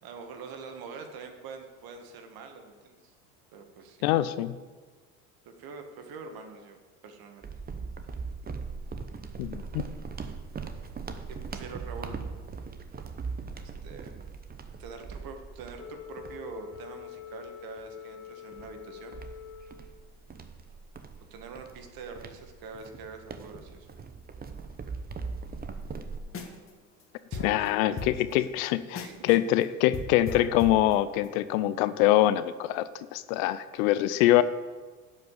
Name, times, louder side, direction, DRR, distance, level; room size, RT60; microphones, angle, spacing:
voice 1, 0.0-3.1 3.5-4.0 5.5-6.8 7.0-7.5 11.3-12.2 13.5-14.1 14.8-19.2 21.3-23.9 27.3-29.4, right 5 dB, 50° right, 5 dB, 1.8 m, -45 dB
voice 2, 4.0-4.5 9.4-9.8 27.4-34.4, left 14 dB, 65° left, 15 dB, 0.7 m, -24 dB
sound 1, 7.4-17.3 17.8-17.9 18.5-26.2, right 5 dB, 20° right, 0.9 m, -40 dB
Wind instrument woodwind instrument, 15.8-20.1, left 9 dB, 80° left, 1.3 m, -45 dB
sound 2, 26.2-26.7 27.0-27.1 27.3-29.3 29.6-29.7 29.9-31.4, left 3 dB, 30° left, 1.7 m, -38 dB
11.5 x 5.4 x 7.6 m, 1.4 s
hypercardioid pair, 85°, 45 cm